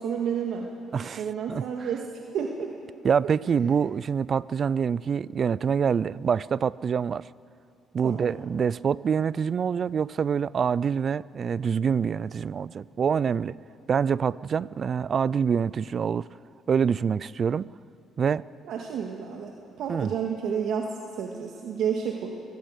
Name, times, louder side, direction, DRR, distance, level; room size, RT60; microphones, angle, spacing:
voice 1, 0.0-0.7 1.2-2.7 8.0-8.4 18.6-22.3, right 7 dB, 75° right, 1.8 m, -31 dB
voice 2, 0.9-1.2 1.5-1.6 3.0-7.3 7.9-13.5 13.9-16.3 16.7-17.7 18.2-18.5 19.9-20.1, right 7 dB, 50° right, 0.4 m, -25 dB
23.0 x 19.0 x 6.7 m
cardioid pair, 80°, 0 cm